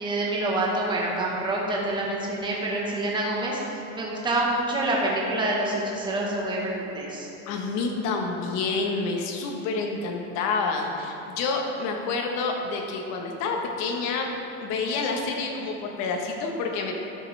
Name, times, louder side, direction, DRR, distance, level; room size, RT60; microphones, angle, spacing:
voice 1, 0.0-7.3, right 2 dB, 15° right, -3 dB, 1.4 m, -27 dB
voice 2, 7.5-14.3 14.6-17.0, left 4 dB, 50° left, 2 dB, 1.3 m, -28 dB
12.5 x 6.6 x 3.4 m, 2.8 s
supercardioid pair, 150°, 34 cm